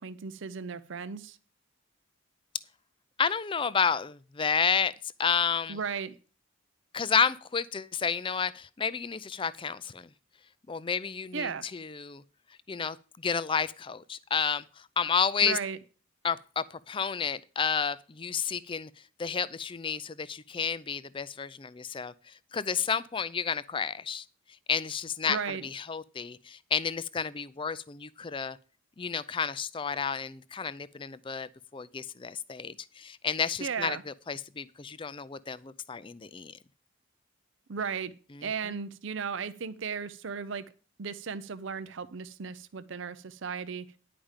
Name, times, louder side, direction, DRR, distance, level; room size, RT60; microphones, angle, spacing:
voice 1, 0.0-1.4 5.7-6.1 11.3-11.7 15.4-15.8 25.3-25.6 33.6-34.0 37.7-38.1 38.4-40.6 41.0-43.9, right 6 dB, 60° right, 0.5 m, -35 dB
voice 2, 3.2-4.9 5.2-5.8 6.9-10.1 10.7-12.2 12.7-13.0 13.2-14.6 15.0-15.6 16.2-18.9 19.2-22.1 22.5-24.2 24.7-28.6 29.0-34.0 34.3-36.5, left 6 dB, 25° left, 0.4 m, -31 dB
10.5 x 5.0 x 7.2 m
head